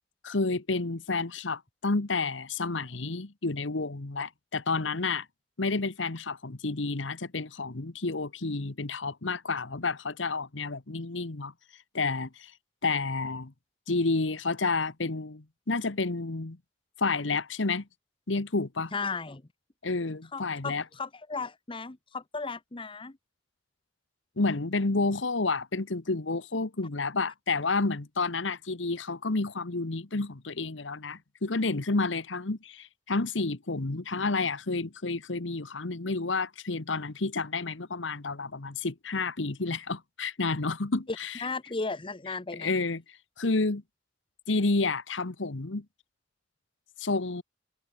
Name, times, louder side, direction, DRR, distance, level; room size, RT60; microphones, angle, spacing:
voice 1, 0.2-5.3 5.6-11.5 11.9-12.5 12.8-13.5 13.9-16.6 17.0-17.9 18.3-18.9 19.8-20.8 24.4-41.4 42.6-43.0 43.4-43.8 44.5-45.8 47.0-47.4, left 3 dB, 85° left, 1.3 m, -30 dB
voice 2, 18.9-19.4 20.3-23.2 41.4-42.7, left 4 dB, 30° left, 0.9 m, -35 dB
head